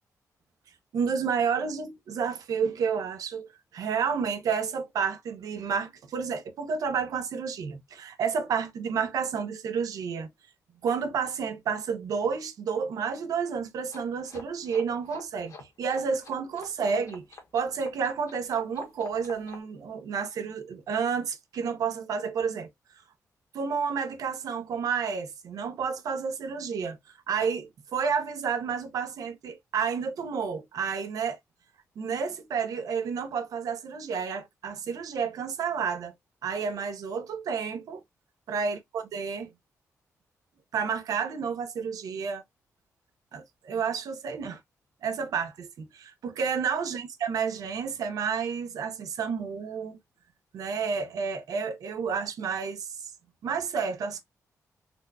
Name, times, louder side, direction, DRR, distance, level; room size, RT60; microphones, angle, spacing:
voice 1, 0.9-10.3 10.8-17.2 17.5-22.7 23.5-27.0 27.3-31.4 32.0-36.1 36.4-38.0 38.5-39.5 40.7-42.4 43.3-44.6 45.0-50.0 50.5-53.1 53.4-54.2, right 6 dB, 80° right, 0.7 m, -30 dB
sound 1, 13.9-19.6, left 4 dB, 60° left, 1.1 m, -48 dB
4.2 x 2.2 x 2.5 m
cardioid pair, 115°, 6 cm